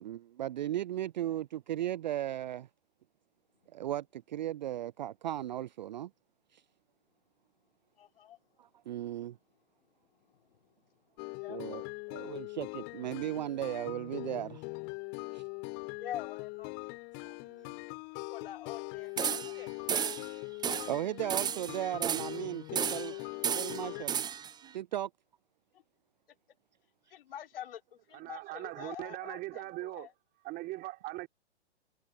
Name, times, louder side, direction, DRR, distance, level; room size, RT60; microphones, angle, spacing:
voice 1, 0.0-2.6 3.8-4.0 4.3-6.1 8.9-9.3 11.5-11.8 12.1-14.5 20.9-23.1 23.5-24.2 24.7-25.1, right 12 dB, 40° right, 0.4 m, -36 dB
voice 2, 8.0-8.4 10.3-10.7 11.4-11.6 12.6-13.0 15.9-16.7 18.1-19.7 27.1-30.1, left 11 dB, 55° left, 4.0 m, -46 dB
sound 1, 11.2-24.0, left 31 dB, 35° left, 6.5 m, -42 dB
sound 2, 19.2-19.6 19.9-20.3 20.6-21.0 21.3-22.4 22.8-23.2 23.4-24.5, right 8 dB, 10° right, 1.1 m, -33 dB
voice 3, 23.4-24.3 24.6-24.8 28.1-30.1 30.4-31.3, right 18 dB, 25° right, 3.8 m, -41 dB
figure-of-eight pair, 115°, 34 cm